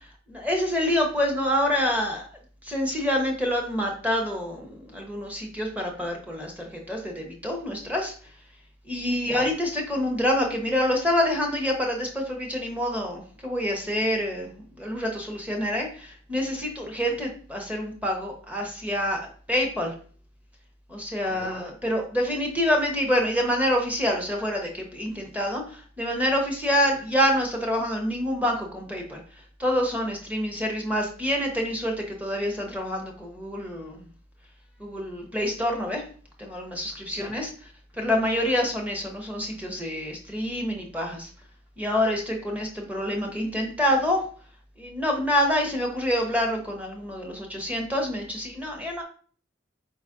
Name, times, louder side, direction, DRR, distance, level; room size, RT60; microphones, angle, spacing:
voice 1, 0.3-2.3 2.6-8.1 8.8-19.2 19.5-19.9 20.9-29.2 29.6-34.0 34.8-36.0 36.4-37.5 37.9-41.3 41.8-44.2 44.8-49.0, equal, 10° right, 1 dB, 0.9 m, -27 dB
4.5 x 4.0 x 2.5 m, 0.43 s
head